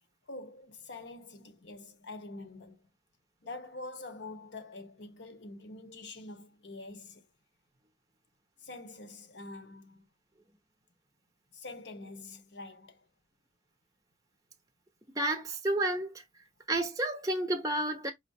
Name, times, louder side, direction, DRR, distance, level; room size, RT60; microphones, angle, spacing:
voice 1, 0.3-2.8 3.4-7.3 8.6-10.1 11.5-13.1, left 2 dB, 85° left, 1.0 m, -45 dB
voice 2, 15.2-16.2 16.7-18.1, right 1 dB, 20° right, 0.7 m, -30 dB
5.0 x 2.0 x 4.1 m
head